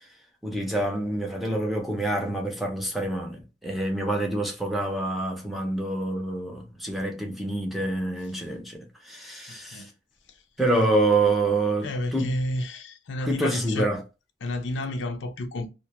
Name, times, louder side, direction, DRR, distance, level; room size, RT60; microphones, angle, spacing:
voice 1, 0.4-9.9 10.6-12.3 13.2-14.0, right 2 dB, ahead, 0.5 m, -27 dB
voice 2, 9.5-9.9 11.8-13.9 14.4-15.7, left 1 dB, 90° left, 0.5 m, -31 dB
2.3 x 2.1 x 2.8 m
head